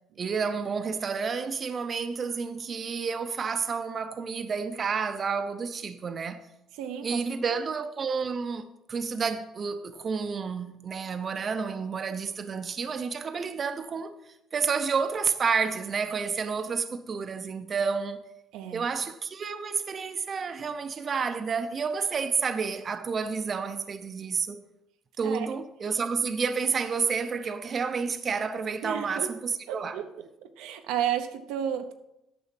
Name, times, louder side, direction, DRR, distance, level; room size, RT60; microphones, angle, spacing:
voice 1, 0.2-6.5 7.0-14.2 14.5-18.2 18.7-24.6 25.2-30.0, right 5 dB, 35° right, 0.7 m, -30 dB
voice 2, 6.8-7.2 7.5-7.6 18.5-18.9 25.2-25.5 28.8-29.3 29.7-30.1 30.4-31.9, right 9 dB, 85° right, 0.8 m, -32 dB
9.6 x 6.1 x 5.8 m
cardioid pair, 105°, 0 cm